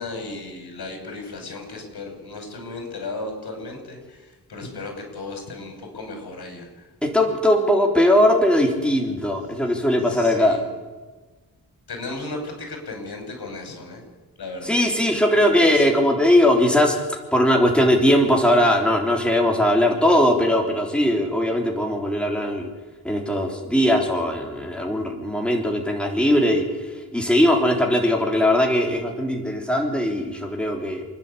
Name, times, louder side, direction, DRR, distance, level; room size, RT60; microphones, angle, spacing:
voice 1, 0.0-6.9 10.1-10.7 11.9-14.0 14.4-14.8 15.3-15.9, left 3 dB, 85° left, 3 dB, 6.4 m, -35 dB
voice 2, 7.0-10.6 14.6-17.0 17.3-22.7 23.0-26.7 27.1-31.0, left 1 dB, 5° left, 1 dB, 3.4 m, -19 dB
29.0 x 10.5 x 8.5 m, 1.3 s
wide cardioid pair, 145°, 37 cm